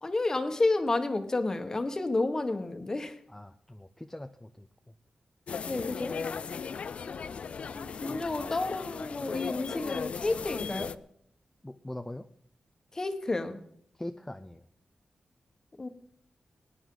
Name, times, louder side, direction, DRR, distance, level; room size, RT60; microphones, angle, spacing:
voice 1, 0.0-3.1 5.7-6.2 7.7-10.9 12.9-13.6 15.8-15.9, left 2 dB, 25° left, 8 dB, 1.3 m, -30 dB
voice 2, 3.3-4.7 11.6-12.3 13.9-14.6, left 1 dB, 10° left, 7 dB, 0.5 m, -42 dB
sound 1, 5.5-11.0, left 6 dB, 65° left, 0.4 m, -37 dB
20.0 x 9.9 x 3.9 m, 0.68 s
wide cardioid pair, 145°, 2 cm